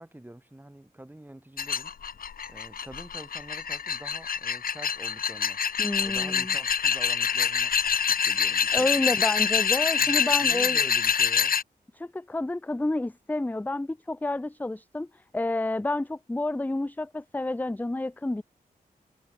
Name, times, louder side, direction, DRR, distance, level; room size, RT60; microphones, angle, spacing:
voice 1, 0.0-1.9 2.5-5.6 6.0-7.7 8.1-9.2 10.0-11.6, right 1 dB, 10° right, 3.7 m, -46 dB
sound 1, 1.6-11.6, left 7 dB, 65° left, 0.9 m, -26 dB
voice 2, 5.8-6.5 8.7-10.8 11.9-18.4, left 2 dB, 10° left, 0.6 m, -29 dB
wide cardioid pair, 85°, 16 cm